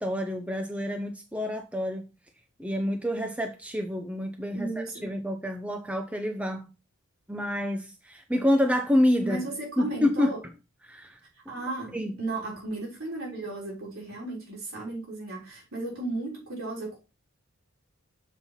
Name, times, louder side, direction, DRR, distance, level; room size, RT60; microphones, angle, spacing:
voice 1, 0.0-2.1 2.6-4.7 5.0-6.7 7.3-9.4 9.8-10.3 10.8-11.2 11.9-12.2, left 1 dB, 5° right, 0.7 m, -27 dB
voice 2, 4.5-5.1 9.2-10.4 11.5-17.0, right 2 dB, 70° right, 3.7 m, -35 dB
7.2 x 4.4 x 5.6 m
head